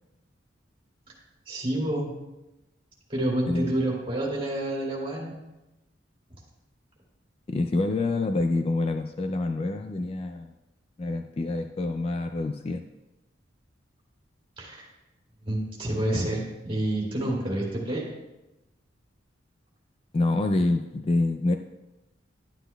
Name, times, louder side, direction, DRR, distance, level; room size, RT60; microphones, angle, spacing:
voice 1, 1.5-2.1 3.1-5.4 14.6-14.9 15.4-18.0, right 1 dB, 30° right, -4 dB, 2.4 m, -28 dB
voice 2, 7.5-10.5 11.0-12.8 20.1-21.6, left 2 dB, 30° left, 6 dB, 0.3 m, -26 dB
11.0 x 9.9 x 2.3 m, 0.98 s
head